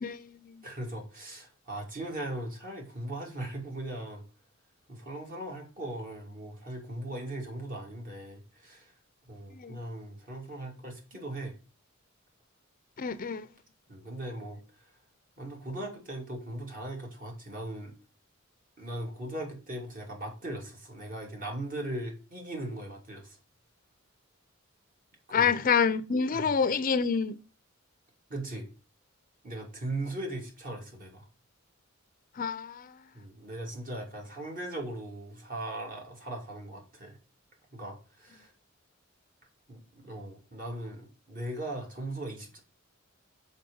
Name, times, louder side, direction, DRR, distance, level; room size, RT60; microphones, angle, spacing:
voice 1, 0.0-0.6 9.5-9.8 13.0-13.5 25.3-27.4 32.4-32.9, left 6 dB, 45° left, 0.5 m, -28 dB
voice 2, 0.6-4.2 4.9-8.9 9.3-11.5 13.9-14.9 15.4-17.9 18.8-23.4 25.3-25.5 26.3-26.5 28.3-28.6 29.4-31.3 33.1-37.2 37.7-38.5 39.7-42.6, right 1 dB, 45° right, 2.9 m, -39 dB
6.4 x 5.1 x 5.4 m
head